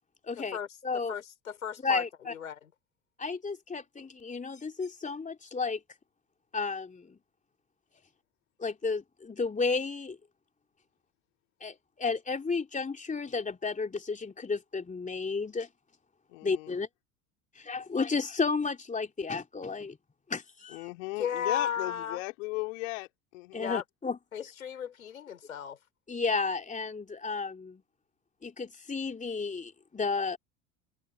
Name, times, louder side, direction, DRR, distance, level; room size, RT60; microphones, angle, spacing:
voice 1, 0.2-0.6 0.8-1.1 1.8-2.3 3.2-5.8 6.5-7.2 8.6-10.2 11.6-15.7 16.4-16.9 17.5-20.0 20.3-20.9 23.5-24.2 26.1-27.8 28.4-30.4, left 4 dB, 20° left, 3.1 m, -32 dB
voice 2, 1.1-2.0 2.3-2.7 21.2-22.2 23.5-23.8 24.3-25.8, left 8 dB, 80° left, 5.5 m, -34 dB
voice 3, 16.3-16.7 20.7-23.7, left 23 dB, 65° left, 3.8 m, -37 dB
figure-of-eight pair, 65°, 41 cm